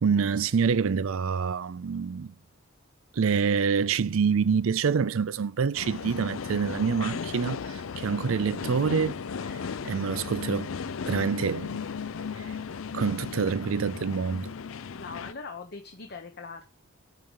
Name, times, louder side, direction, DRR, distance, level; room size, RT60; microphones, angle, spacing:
voice 1, 0.0-2.3 3.1-9.2 9.8-10.7 11.1-11.8 12.4-12.5 12.9-14.5, right 6 dB, 70° right, 0.4 m, -26 dB
sound 1, 5.7-15.3, left 6 dB, 70° left, 0.5 m, -36 dB
voice 2, 14.9-16.7, left 4 dB, 50° left, 0.9 m, -41 dB
8.4 x 5.1 x 5.5 m
head